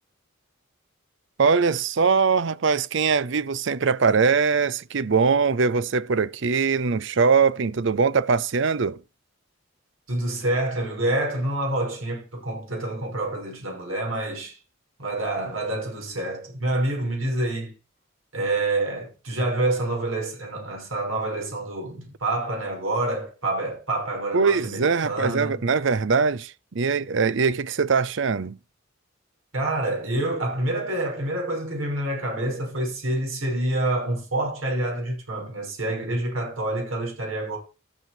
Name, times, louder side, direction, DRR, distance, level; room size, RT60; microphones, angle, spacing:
voice 1, 1.4-9.0 24.3-28.6, right 5 dB, 60° right, 0.6 m, -22 dB
voice 2, 10.1-14.6 15.0-17.7 18.3-25.6 29.5-37.6, right 2 dB, 80° right, 6.0 m, -27 dB
13.5 x 6.4 x 5.8 m
head